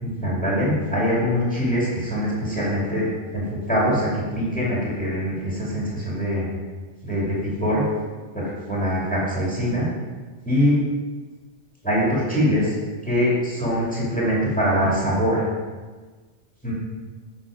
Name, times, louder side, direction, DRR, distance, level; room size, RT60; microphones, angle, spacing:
voice 1, 0.0-6.5 7.0-7.8 8.3-9.9 10.4-10.8 11.8-12.7 13.0-15.5 16.6-16.7, equal, 5° left, -6 dB, 2.2 m, -23 dB
7.4 x 6.1 x 4.9 m, 1.4 s
omnidirectional pair, 1.3 m